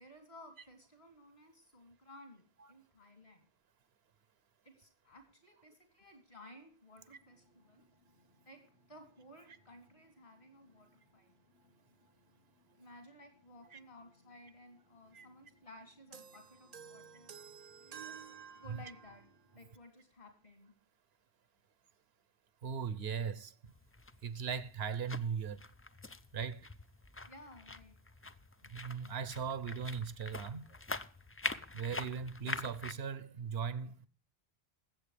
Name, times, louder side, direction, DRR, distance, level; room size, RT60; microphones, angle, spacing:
voice 1, 0.0-3.5 4.6-7.9 8.4-8.6 8.9-11.4 12.8-17.4 17.8-19.3 19.5-20.7 27.3-28.0 30.7-30.8, left 1 dB, 55° left, 3.6 m, -57 dB
sound 1, 6.9-19.7, left 1 dB, 90° left, 4.1 m, -71 dB
sound 2, 16.1-19.3, right 7 dB, 45° right, 0.6 m, -52 dB
voice 2, 22.6-23.5 24.2-25.6 26.3-26.7 28.6-30.7 31.7-34.1, right 6 dB, 75° right, 1.0 m, -38 dB
sound 3, 23.7-32.9, left 3 dB, 25° left, 0.3 m, -44 dB
20.5 x 7.9 x 3.3 m
omnidirectional pair, 1.1 m